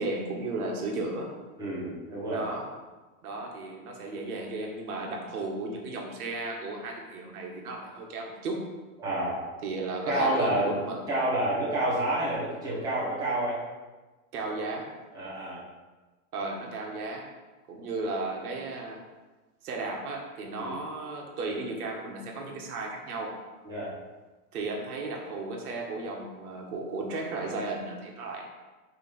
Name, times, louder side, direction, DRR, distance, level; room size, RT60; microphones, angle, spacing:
voice 1, 0.0-1.3 2.3-2.7 3.2-8.6 9.6-11.0 14.3-14.9 16.3-17.3 17.7-19.0 19.6-23.3 24.5-28.4, right 2 dB, 75° right, 0 dB, 1.8 m, -34 dB
voice 2, 1.6-2.4 9.0-9.4 10.0-10.7 11.1-13.6 15.1-15.6 20.5-20.8 23.6-23.9, right 1 dB, 10° right, -9 dB, 1.7 m, -29 dB
8.7 x 3.2 x 5.9 m, 1.2 s
supercardioid pair, 175°, 45 cm